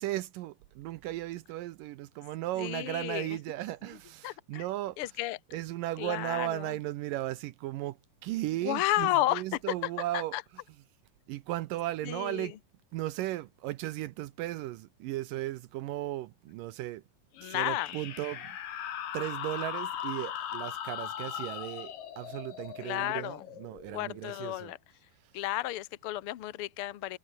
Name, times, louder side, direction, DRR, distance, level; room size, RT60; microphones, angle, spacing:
voice 1, 0.0-8.0 8.2-10.9 11.3-12.6 12.9-17.0 17.4-18.6 19.1-24.7 25.2-25.3, right 16 dB, 75° right, 2.2 m, -36 dB
voice 2, 2.6-3.4 4.2-4.6 5.0-5.4 6.0-6.7 8.6-10.4 12.0-12.5 17.4-17.9 22.8-23.4 23.9-24.8 25.3-27.2, left 15 dB, 85° left, 1.2 m, -32 dB
sound 1, 17.3-24.6, left 10 dB, 70° left, 3.5 m, -39 dB
omnidirectional pair, 4.2 m